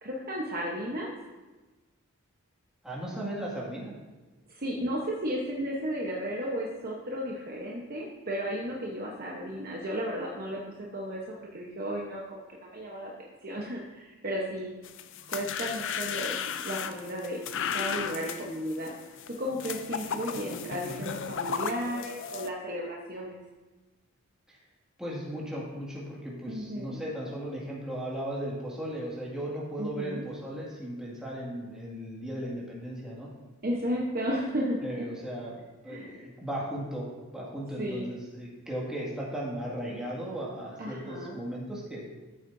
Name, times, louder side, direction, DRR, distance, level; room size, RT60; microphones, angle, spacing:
voice 1, 0.0-1.1 4.5-14.7 15.3-17.4 17.7-23.3 26.5-27.0 29.8-30.2 33.6-34.8 35.9-36.1 37.8-38.0 40.8-41.4, equal, 40° right, -3 dB, 1.0 m, -34 dB
voice 2, 2.8-3.9 20.8-21.1 24.5-24.6 25.0-33.3 34.8-42.0, right 1 dB, 5° right, -6 dB, 2.0 m, -36 dB
sound 1, 14.8-22.5, left 7 dB, 55° left, 0.5 m, -35 dB
14.0 x 7.5 x 2.7 m, 1.2 s
head